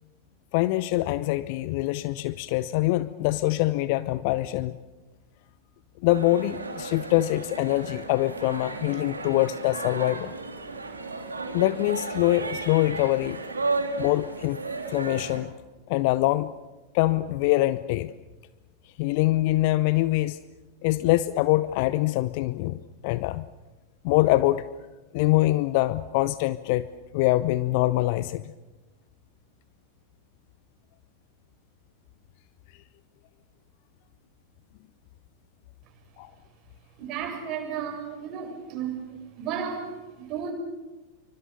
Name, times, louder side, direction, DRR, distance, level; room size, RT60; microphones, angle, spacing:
voice 1, 0.5-4.8 6.0-10.3 11.5-13.4 14.0-14.6 14.9-15.5 15.9-16.5 16.9-18.1 19.0-20.4 20.8-23.5 24.0-24.6 25.1-26.9 27.1-28.5 36.2-36.3, left 17 dB, 45° left, 16 dB, 0.7 m, -24 dB
sound 1, 6.1-15.4, right 3 dB, 75° right, 3.3 m, -34 dB
voice 2, 37.0-39.0 39.4-40.5, right 7 dB, 35° right, 2 dB, 7.6 m, -33 dB
27.5 x 25.0 x 6.9 m, 1.1 s
figure-of-eight pair, 90°, 0 cm